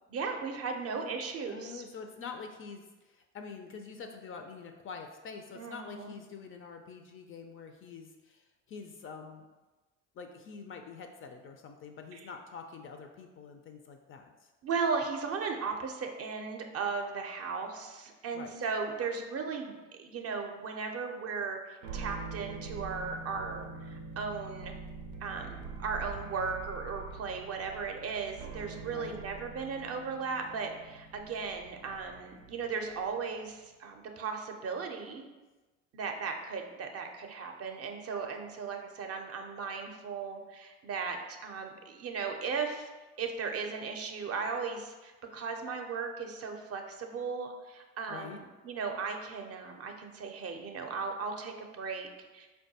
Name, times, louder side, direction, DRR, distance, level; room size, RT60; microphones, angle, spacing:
voice 1, 0.1-1.8 5.6-6.1 12.1-12.3 14.6-24.7 25.2-35.2 35.9-42.9 43.2-52.5, right 5 dB, 40° right, 4 dB, 0.5 m, -36 dB
voice 2, 1.5-9.5 10.1-14.5 18.3-18.6 28.9-29.2 48.1-48.4, left 5 dB, 35° left, 5 dB, 0.4 m, -46 dB
sound 1, 21.8-33.2, right 4 dB, 90° right, 0.5 m, -45 dB
4.4 x 2.2 x 2.7 m, 1.2 s
hypercardioid pair, 70°, 36 cm